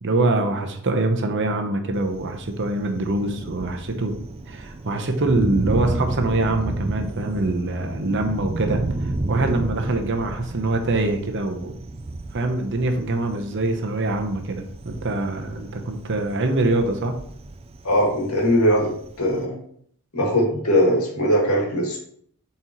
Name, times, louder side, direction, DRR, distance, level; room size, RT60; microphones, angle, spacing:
voice 1, 0.0-4.2 4.5-11.7 12.3-17.1, right 2 dB, 55° right, 5 dB, 0.9 m, -24 dB
Thunder, 1.9-19.5, right 2 dB, 25° right, 0.4 m, -32 dB
voice 2, 17.8-18.9 19.2-19.6 20.1-22.0, equal, 75° left, -1 dB, 2.2 m, -20 dB
7.6 x 4.3 x 3.1 m, 0.64 s
head